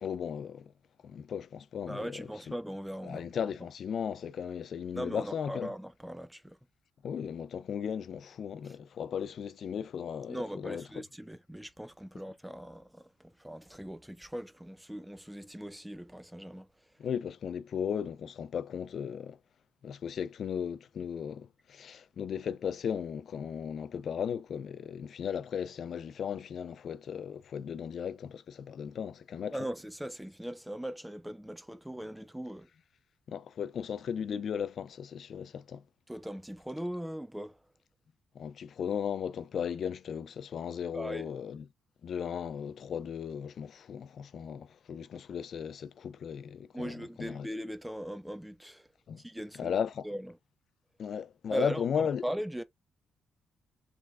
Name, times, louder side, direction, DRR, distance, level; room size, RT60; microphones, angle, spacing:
voice 1, 0.0-0.7 1.0-2.2 3.1-5.7 7.0-10.8 17.0-19.4 19.8-29.6 33.3-35.8 38.4-41.6 42.0-46.9 47.2-47.5 49.1-49.2 49.6-50.0 51.0-52.2, left 7 dB, 60° left, 0.4 m, -36 dB
voice 2, 1.9-3.5 4.9-6.6 8.6-8.8 10.3-16.7 29.5-32.7 36.1-37.6 40.9-41.3 46.7-48.9 49.2-49.8 50.0-50.4 51.5-52.6, equal, 5° right, 0.5 m, -39 dB
3.5 x 3.2 x 2.4 m
cardioid pair, 90°, 0 cm